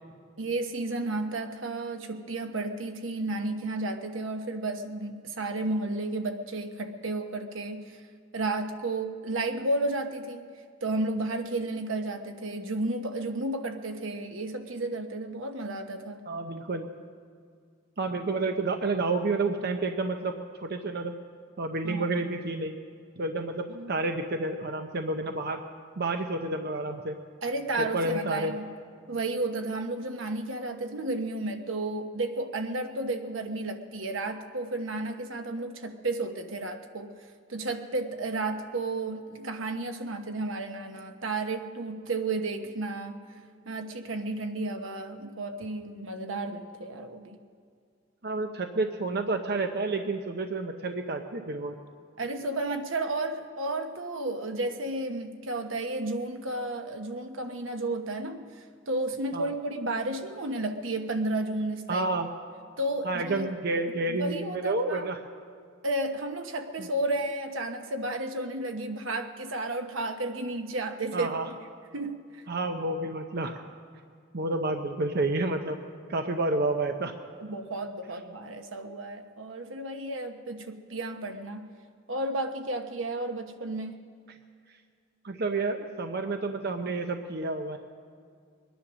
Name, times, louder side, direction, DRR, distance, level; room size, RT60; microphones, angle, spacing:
voice 1, 0.4-8.0 8.3-10.5 10.8-16.2 21.8-22.1 23.7-23.9 27.4-28.7 29.1-37.1 37.5-43.2 43.7-47.4 52.2-62.1 62.8-63.5 64.1-65.1 65.8-71.6 71.9-72.4 77.4-81.7 82.1-84.0, right 2 dB, 85° right, 6 dB, 1.2 m, -32 dB
voice 2, 16.3-16.9 18.0-20.3 20.6-21.1 21.6-22.8 23.2-25.6 26.0-27.2 27.8-28.6 48.2-51.7 59.3-59.5 61.9-62.3 63.0-65.2 66.8-66.9 71.1-71.5 72.5-73.6 74.3-75.8 76.1-77.1 85.2-87.8, right 2 dB, 55° right, 5 dB, 0.7 m, -30 dB
22.5 x 10.0 x 6.2 m, 2.1 s
head